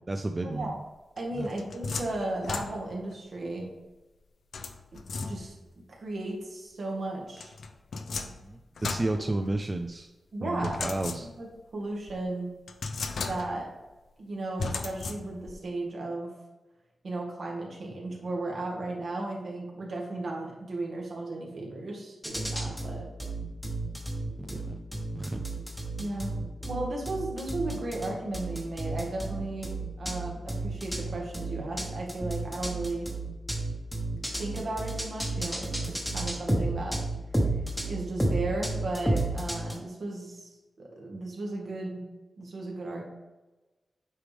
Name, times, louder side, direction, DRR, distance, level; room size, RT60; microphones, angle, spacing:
voice 1, 0.1-0.8 1.3-1.5 8.3-10.1 10.4-11.3 24.4-24.8 25.1-25.4, right 2 dB, 20° right, 6 dB, 0.3 m, -32 dB
sound 1, 1.2-3.1 4.5-5.7 7.4-9.9 10.6-11.6 12.1-12.2 12.7-13.8 14.6-15.6, left 4 dB, 70° left, 0.6 m, -36 dB
voice 2, 1.2-3.7 4.9-5.6 5.9-7.5 10.3-10.9 11.2-11.5 11.7-12.5 13.2-13.7 14.2-16.3 17.0-23.1 26.0-26.3 26.6-33.1 34.4-37.0 37.8-42.0 42.4-43.0, right 2 dB, 60° right, -1 dB, 1.8 m, -35 dB
sound 2, 22.2-39.7, right 2 dB, 5° left, 1.2 m, -31 dB
8.3 x 5.0 x 3.5 m, 1.1 s
wide cardioid pair, 155°, 0 cm